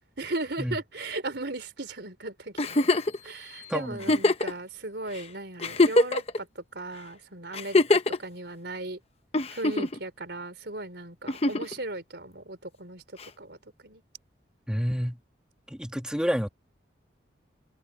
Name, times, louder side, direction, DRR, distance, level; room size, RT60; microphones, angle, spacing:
voice 1, 0.2-2.8 3.2-9.0 9.5-14.0, right 2 dB, 60° right, 4.0 m, -37 dB
sound 1, 2.6-4.6, left 11 dB, 65° left, 4.3 m, -53 dB
Giggle, 2.6-3.2 4.0-4.5 5.2-5.3 5.6-6.4 7.5-8.2 9.3-10.0 11.3-11.7 13.2-13.3, left 2 dB, 30° left, 0.8 m, -23 dB
voice 2, 3.7-4.0 14.7-15.2 15.7-16.5, equal, 5° right, 1.9 m, -29 dB
open air
head